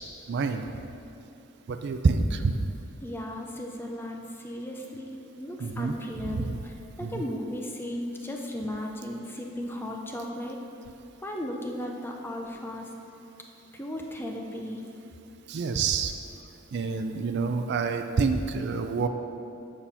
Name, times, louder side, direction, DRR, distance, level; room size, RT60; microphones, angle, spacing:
voice 1, 0.3-0.6 1.7-2.7 5.6-6.0 6.3-6.7 7.0-7.2 15.5-16.1 16.7-19.1, right 4 dB, 55° right, 7 dB, 0.4 m, -27 dB
voice 2, 3.0-5.1 5.4-10.6 11.2-12.8 13.7-14.8, left 1 dB, 10° left, 1 dB, 0.6 m, -35 dB
7.6 x 4.2 x 5.8 m, 2.7 s
head